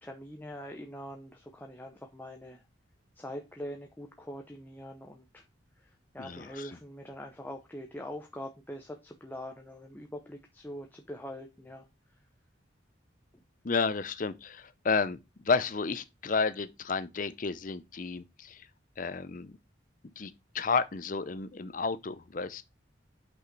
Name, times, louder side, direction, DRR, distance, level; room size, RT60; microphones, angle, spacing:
voice 1, 0.0-2.6 3.2-5.4 5.8-11.8, equal, 10° left, 0.7 m, -43 dB
voice 2, 6.2-6.8 13.6-15.2 15.4-18.7 19.0-19.6 20.2-22.6, left 4 dB, 40° left, 0.6 m, -31 dB
6.3 x 5.6 x 4.5 m
head